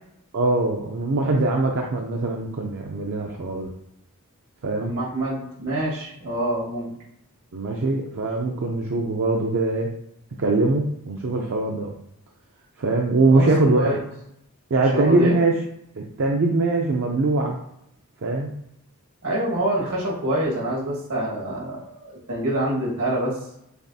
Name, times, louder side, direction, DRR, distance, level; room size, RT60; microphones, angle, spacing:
voice 1, 0.3-3.7 4.6-4.9 7.5-9.9 10.4-11.9 12.8-14.0 14.7-15.5 16.0-17.6 18.2-18.5, right 2 dB, 55° right, 0 dB, 0.5 m, -22 dB
voice 2, 4.8-6.9 13.2-14.0 14.9-15.3 19.2-23.4, right 1 dB, 80° right, -4 dB, 1.6 m, -26 dB
6.7 x 2.4 x 2.7 m, 0.79 s
head